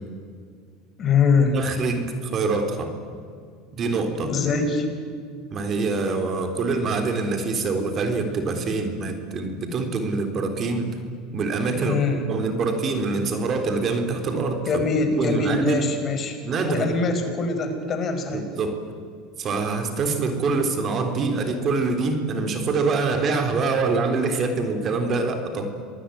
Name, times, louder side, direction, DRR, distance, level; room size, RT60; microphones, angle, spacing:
voice 1, 1.0-1.6 4.2-4.9 11.8-12.3 14.7-16.4 16.7-18.5, left 4 dB, 35° left, 6 dB, 5.1 m, -23 dB
voice 2, 1.5-2.9 3.7-4.3 5.5-10.9 11.3-14.8 15.2-15.8 16.4-16.9 18.3-18.8 19.4-25.7, right 4 dB, 40° right, 6 dB, 3.9 m, -25 dB
26.0 x 19.5 x 9.6 m, 2.1 s
supercardioid pair, 115°, 0 cm